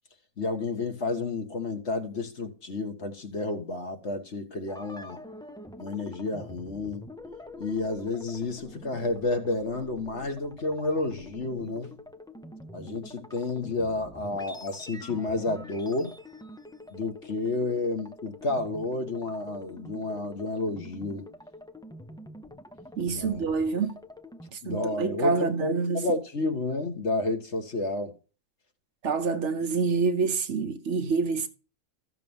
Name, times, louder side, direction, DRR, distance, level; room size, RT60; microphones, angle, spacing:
voice 1, 0.4-5.2 5.8-7.1 7.6-11.9 12.7-16.1 16.9-21.3 23.1-23.4 24.6-28.1, left 2 dB, 55° left, 1.9 m, -31 dB
sound 1, 4.7-24.5, left 1 dB, 5° left, 0.4 m, -46 dB
voice 2, 23.0-24.0 24.5-26.1 29.0-31.5, right 4 dB, 60° right, 1.2 m, -27 dB
14.0 x 6.8 x 3.6 m
omnidirectional pair, 1.4 m